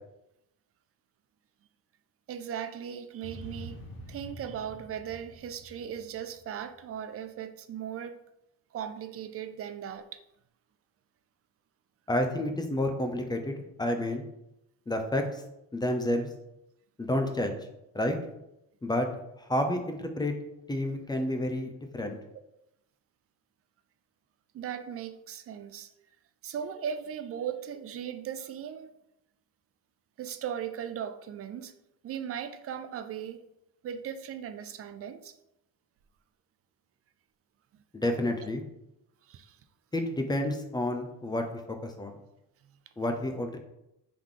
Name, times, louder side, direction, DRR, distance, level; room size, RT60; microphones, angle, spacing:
voice 1, 2.3-8.2 8.7-10.2 22.3-22.4 24.5-25.9 26.4-28.9 30.2-31.7 32.0-33.5 33.8-35.4 38.2-38.3 39.2-39.6 42.6-42.8, right 9 dB, 40° right, 0.4 m, -38 dB
sound 1, 3.2-6.7, equal, 80° left, 1.2 m, -46 dB
voice 2, 12.1-14.2 14.9-15.4 15.7-16.3 17.0-17.6 17.9-18.2 18.8-19.1 19.5-20.3 20.7-22.2 37.9-38.6 39.9-41.4 41.8-42.1 43.0-43.6, left 1 dB, 10° left, 0.5 m, -29 dB
3.7 x 3.0 x 3.8 m
cardioid pair, 100°, 35 cm